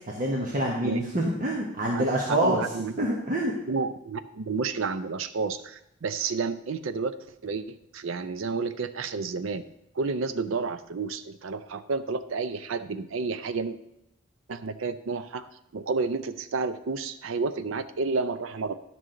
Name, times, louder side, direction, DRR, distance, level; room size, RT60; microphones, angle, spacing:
voice 1, 0.1-2.6 3.0-3.5, right 1 dB, 40° right, -3 dB, 1.1 m, -26 dB
voice 2, 2.0-2.9 3.7-7.2 7.4-9.6 10.0-13.8 14.5-15.5 15.7-18.7, right 4 dB, 80° right, 11 dB, 0.5 m, -30 dB
11.0 x 6.2 x 3.8 m, 0.83 s
head